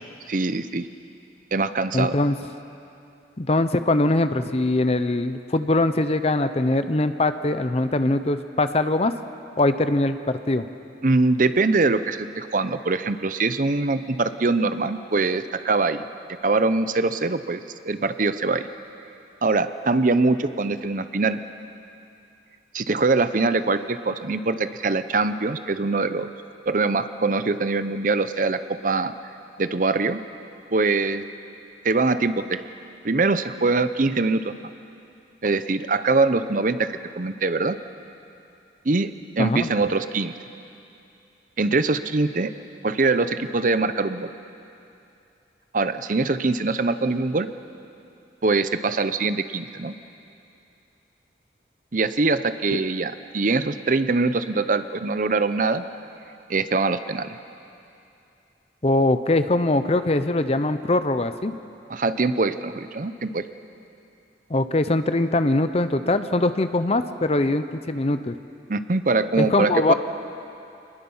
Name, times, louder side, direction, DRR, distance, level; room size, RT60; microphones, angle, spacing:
voice 1, 0.3-0.9 1.5-2.2 11.0-16.0 16.4-18.7 19.4-21.4 22.7-26.3 26.7-29.1 29.6-30.2 30.7-31.2 31.8-32.6 33.0-34.7 35.4-37.8 38.8-40.3 41.6-42.5 42.8-44.3 45.7-47.5 48.4-49.9 51.9-55.8 56.5-57.4 61.9-63.5 68.7-69.9, right 3 dB, 45° right, 11 dB, 0.7 m, -23 dB
voice 2, 1.9-2.4 3.4-9.1 9.6-10.7 39.4-39.7 52.7-52.8 58.8-61.5 64.5-68.3 69.4-69.9, left 2 dB, 35° left, 10 dB, 0.7 m, -22 dB
27.5 x 20.5 x 5.6 m, 2.7 s
head